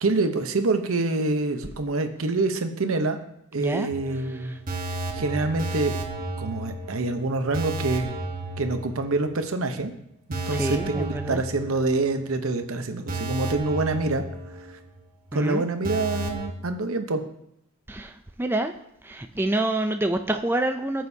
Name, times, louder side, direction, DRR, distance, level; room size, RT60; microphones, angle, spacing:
voice 1, 0.0-3.2 3.5-5.9 6.4-8.1 8.6-9.9 10.3-14.2 15.3-17.2, right 3 dB, 70° right, 7 dB, 0.8 m, -26 dB
voice 2, 3.6-3.9 10.5-11.4 15.3-15.6 17.9-18.1 18.4-18.7 19.0-21.1, right 1 dB, 10° right, 6 dB, 0.4 m, -27 dB
sound 1, 3.9-9.5 9.8-9.9 10.3-12.2 12.5-12.6 13.1-15.0 15.3-15.4 15.8-16.5, right 2 dB, 40° right, 1.0 m, -33 dB
14.0 x 7.6 x 2.8 m, 0.77 s
head